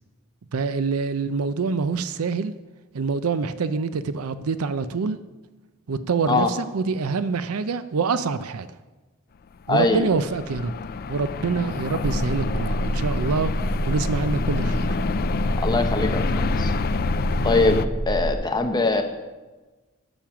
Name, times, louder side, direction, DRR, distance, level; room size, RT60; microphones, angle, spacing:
voice 1, 0.5-2.5 2.9-5.2 5.9-8.7 9.7-10.7 11.1-13.5 13.9-14.9, right 4 dB, 85° right, 13 dB, 0.5 m, -25 dB
sound 1, 9.6-17.9, left 5 dB, 45° left, 0.4 m, -28 dB
voice 2, 9.7-10.0 15.6-16.7 17.4-19.0, left 3 dB, 20° left, 5 dB, 1.0 m, -22 dB
sound 2, 12.0-18.3, right 1 dB, 25° right, 0.8 m, -27 dB
12.0 x 7.3 x 6.0 m, 1.2 s
head